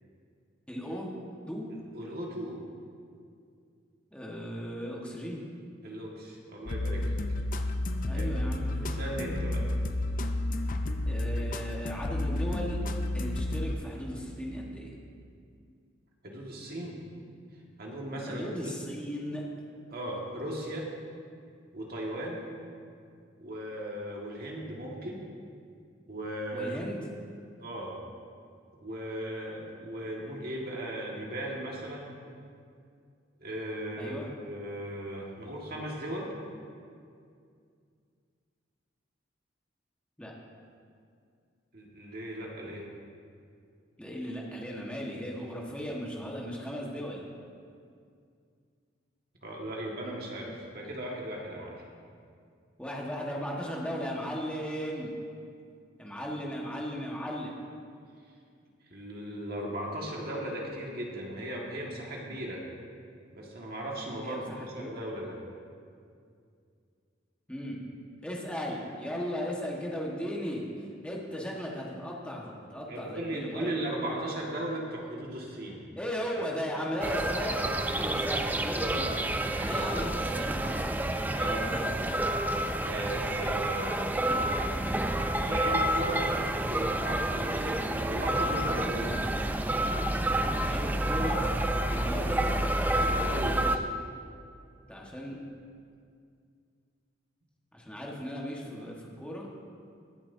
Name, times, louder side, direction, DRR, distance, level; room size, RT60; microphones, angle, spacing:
voice 1, 0.7-1.1 1.5-1.7 4.1-5.4 8.0-9.2 11.0-12.8 13.1-14.9 18.2-19.5 26.5-27.0 34.0-34.3 40.2-40.3 44.0-47.2 52.8-55.1 56.0-57.5 64.2-64.9 67.5-67.8 68.2-73.8 76.0-77.7 78.0-79.3 79.6-82.1 90.6-91.4 91.8-92.5 94.9-95.4 97.7-99.5, equal, 5° left, -3 dB, 1.4 m, -36 dB
voice 2, 1.9-2.6 5.8-7.1 8.1-8.3 8.8-9.7 16.2-17.0 17.8-18.7 19.9-20.9 21.7-22.4 23.4-25.2 26.1-26.8 27.6-28.0 28.8-32.1 33.4-36.3 41.7-42.9 49.4-51.8 58.9-62.6 63.3-65.4 72.9-75.8 77.9-78.0 79.4-80.1 81.1-82.2 82.8-84.0 85.4-89.1 92.1-92.3 92.9-93.8, right 1 dB, 55° right, -2 dB, 1.8 m, -37 dB
sound 1, 6.7-13.8, left 1 dB, 45° left, 0.6 m, -31 dB
sound 2, 77.0-93.8, right 1 dB, 10° right, 0.4 m, -29 dB
22.0 x 7.5 x 2.7 m, 2.3 s
head